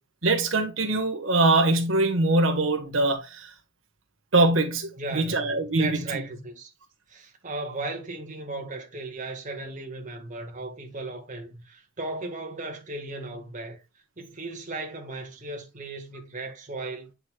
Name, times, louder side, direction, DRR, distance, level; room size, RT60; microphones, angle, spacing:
voice 1, 0.2-3.5 4.3-6.2, right 2 dB, 85° right, 1.4 m, -23 dB
voice 2, 5.0-6.7 7.1-13.8 14.2-17.1, right 2 dB, 40° right, 1.7 m, -36 dB
8.2 x 5.5 x 2.3 m
head